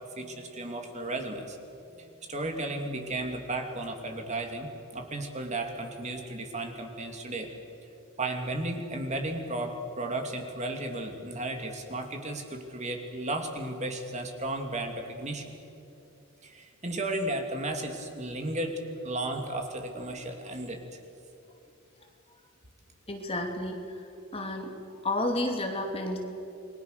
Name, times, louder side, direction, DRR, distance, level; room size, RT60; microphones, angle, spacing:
voice 1, 0.2-1.6 2.0-7.5 8.2-15.5 16.4-20.8, right 2 dB, 30° right, 4 dB, 2.5 m, -34 dB
voice 2, 23.1-23.8 24.3-24.7 25.0-26.2, left 1 dB, 25° left, 2 dB, 2.7 m, -30 dB
29.0 x 21.5 x 6.7 m, 2.8 s
head